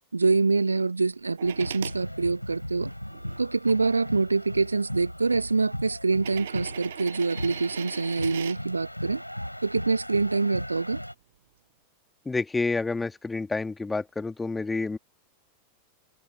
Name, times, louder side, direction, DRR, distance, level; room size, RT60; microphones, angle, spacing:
voice 1, 0.1-2.9 3.4-9.2 9.6-11.0, right 3 dB, 80° right, 1.0 m, -25 dB
sound 1, 1.4-11.1, equal, 90° left, 4.2 m, -37 dB
sound 2, 1.4-2.0 2.7-3.7 4.7-4.8 6.1-8.6 10.5-10.6, right 12 dB, 60° right, 7.7 m, -39 dB
voice 2, 12.3-15.0, left 3 dB, 10° left, 2.3 m, -29 dB
figure-of-eight pair, 90°, 0 cm